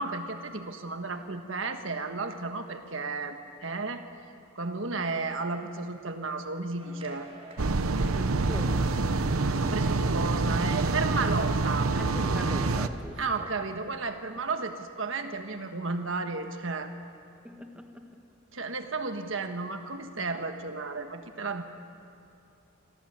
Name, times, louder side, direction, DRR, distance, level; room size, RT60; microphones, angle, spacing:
voice 1, 0.0-3.4 3.6-4.0 4.5-7.3 9.4-11.9 13.2-16.9 18.5-21.6, right 3 dB, 65° right, 6 dB, 1.5 m, -33 dB
sound 1, 6.8-12.7, right 2 dB, 30° right, 4.0 m, -49 dB
sound 2, 7.6-12.9, right 3 dB, 90° right, 0.9 m, -26 dB
voice 2, 8.1-9.1 11.9-13.5 17.4-18.1, equal, 5° right, 4 dB, 1.7 m, -41 dB
26.5 x 17.5 x 8.9 m, 2.6 s
head